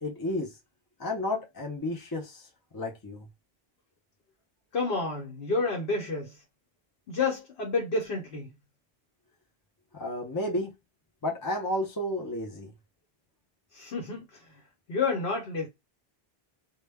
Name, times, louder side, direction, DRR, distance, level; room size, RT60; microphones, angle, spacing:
voice 1, 0.0-0.6 1.0-2.5 2.7-3.3 9.9-10.7 11.2-12.7, left 1 dB, 35° left, 0.4 m, -32 dB
voice 2, 4.7-6.4 7.1-8.5 13.7-14.5 14.9-15.7, left 3 dB, 70° left, 0.9 m, -30 dB
2.1 x 2.0 x 3.3 m
omnidirectional pair, 1.1 m